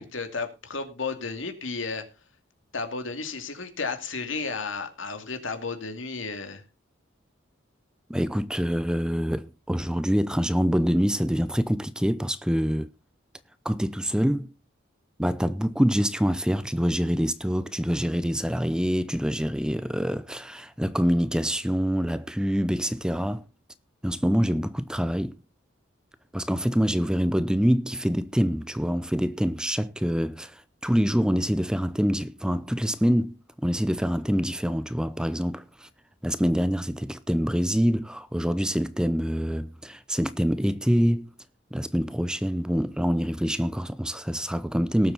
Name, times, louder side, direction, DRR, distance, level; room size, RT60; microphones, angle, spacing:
voice 1, 0.1-2.1 2.7-6.6, left 4 dB, 80° left, 2.5 m, -33 dB
voice 2, 8.1-12.9 13.6-14.5 15.2-23.4 24.0-25.4 26.3-35.9 36.2-41.3 41.7-45.1, equal, 5° right, 0.6 m, -25 dB
19.0 x 7.6 x 4.0 m
head